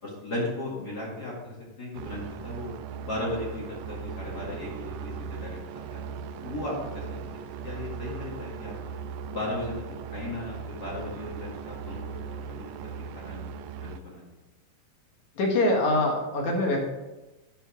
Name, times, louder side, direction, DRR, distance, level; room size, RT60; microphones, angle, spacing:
voice 1, 0.0-2.7 3.0-5.6 5.9-6.0 6.4-7.2 7.6-8.9 9.3-9.7 10.1-14.2, left 1 dB, 35° left, -4 dB, 2.0 m, -36 dB
sound 1, 1.9-14.0, right 6 dB, 80° right, 1.8 m, -38 dB
voice 2, 15.4-16.9, left 1 dB, 60° left, 0 dB, 2.8 m, -24 dB
10.5 x 5.7 x 4.7 m, 1.1 s
omnidirectional pair, 3.9 m